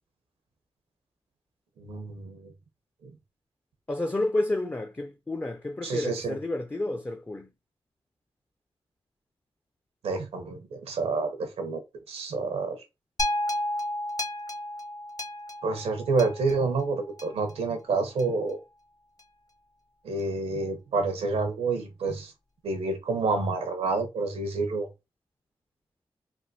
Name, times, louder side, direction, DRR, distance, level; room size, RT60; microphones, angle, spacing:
voice 1, 1.8-2.5 3.0-3.1 5.8-6.4 10.0-11.8 12.1-12.8 15.6-18.6 20.0-22.3 22.6-24.9, right 3 dB, 85° right, 0.7 m, -28 dB
voice 2, 3.9-7.5, left 2 dB, 20° left, 0.4 m, -30 dB
sound 1, 13.2-17.5 18.2-18.3, left 1 dB, 35° left, 0.7 m, -32 dB
3.4 x 2.2 x 2.6 m
cardioid pair, 45°, 10 cm